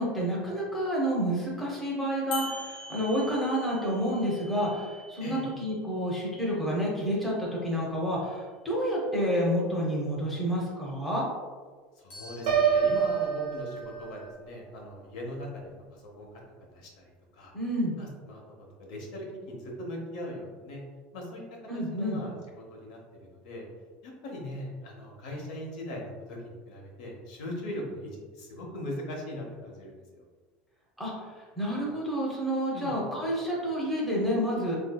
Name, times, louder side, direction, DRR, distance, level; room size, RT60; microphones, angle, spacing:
voice 1, 0.0-11.3 17.5-18.0 21.7-22.2 31.0-31.1 31.6-34.8, equal, ahead, -5 dB, 0.6 m, -29 dB
sound 1, 2.3-6.2 12.1-14.3, left 1 dB, 40° left, 0.9 m, -45 dB
voice 2, 11.9-16.4 16.7-17.5 18.0-20.8 21.1-21.4 21.7-23.7 24.0-30.2 32.7-32.9, left 1 dB, 90° left, -1 dB, 0.9 m, -40 dB
Piano, 12.5-14.4, right 7 dB, 85° right, 0.6 m, -26 dB
3.9 x 2.6 x 2.2 m, 1.5 s
cardioid pair, 175°, 4 cm